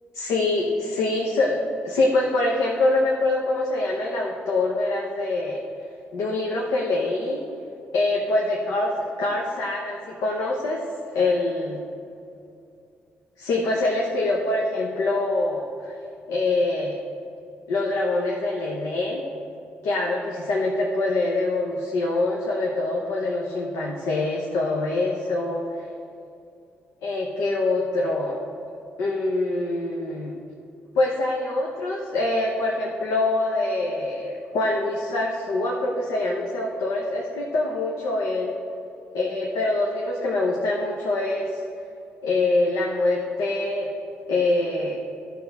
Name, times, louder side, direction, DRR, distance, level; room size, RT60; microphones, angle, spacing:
voice 1, 0.1-5.6 6.1-7.4 7.9-10.8 11.1-11.8 13.4-16.0 16.3-17.0 17.7-19.3 19.8-25.9 27.0-28.4 29.0-30.3 31.0-38.5 39.1-41.6 42.2-43.9 44.3-45.0, left 2 dB, 85° left, -2 dB, 0.9 m, -24 dB
12.0 x 5.9 x 3.5 m, 2.7 s
supercardioid pair, 55°, 5 cm